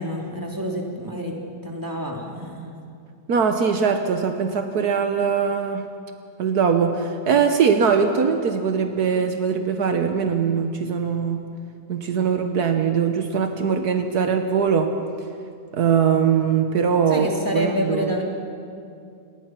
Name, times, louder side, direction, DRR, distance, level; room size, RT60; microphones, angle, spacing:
voice 1, 0.0-1.4 1.6-2.8 17.1-18.2, equal, 10° right, 0 dB, 3.0 m, -28 dB
voice 2, 3.3-5.8 6.4-11.4 11.9-14.9 15.7-17.3 17.5-18.2, right 6 dB, 75° right, 6 dB, 1.6 m, -21 dB
29.0 x 20.0 x 6.0 m, 2.5 s
omnidirectional pair, 1.7 m